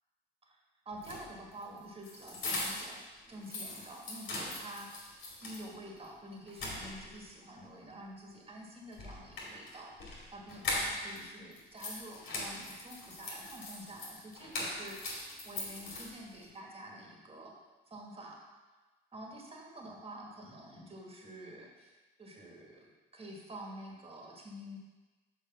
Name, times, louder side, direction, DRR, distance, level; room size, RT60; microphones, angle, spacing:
voice 1, 0.8-3.0 3.3-17.5 17.9-18.4 19.1-24.8, right 1 dB, 30° right, -1 dB, 1.7 m, -48 dB
sound 1, 0.9-3.0 3.3-5.7 6.0-6.1 6.5-7.3 8.9-11.2 11.5-16.4, left 2 dB, 80° left, 2.3 m, -40 dB
6.7 x 4.8 x 5.4 m, 1.2 s
cardioid pair, 90°, 20 cm